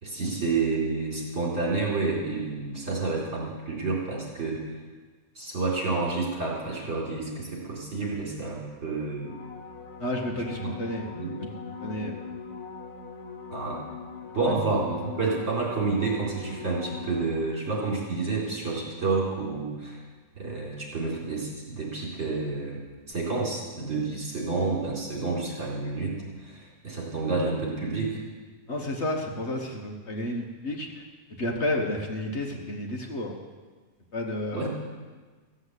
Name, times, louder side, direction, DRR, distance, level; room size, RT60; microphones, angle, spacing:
voice 1, 0.0-4.6 5.4-9.3 10.6-10.7 11.1-11.3 13.5-13.8 14.3-20.0 20.4-22.8 23.1-28.2 34.5-34.7, right 3 dB, 55° right, -4 dB, 4.3 m, -29 dB
sound 1, 9.2-17.8 23.1-23.2, left 5 dB, 85° left, 1.5 m, -41 dB
voice 2, 10.0-11.1 11.4-11.5 11.8-12.1 14.4-14.6 28.7-31.0 31.4-33.4 34.1-34.7, left 1 dB, 50° left, 1 dB, 1.5 m, -31 dB
15.0 x 7.6 x 8.1 m, 1.4 s
omnidirectional pair, 1.6 m